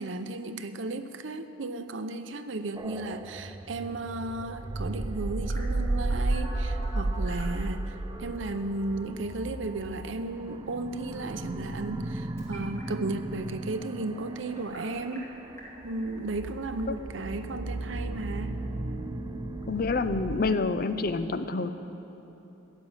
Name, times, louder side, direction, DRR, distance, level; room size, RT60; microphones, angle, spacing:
voice 1, 0.0-15.3 15.8-18.5, right 2 dB, 85° right, 10 dB, 0.7 m, -34 dB
sound 1, 2.8-20.6, right 2 dB, 20° right, 0.3 m, -34 dB
Telephone, 5.5-7.6 8.1-9.1 11.1-12.1 12.4-12.8 14.5-15.2 15.6-15.7 16.0-21.1, equal, 15° left, 2.5 m, -48 dB
voice 2, 19.7-21.7, left 3 dB, 50° left, 10 dB, 0.6 m, -27 dB
15.0 x 7.5 x 9.0 m, 3.0 s
head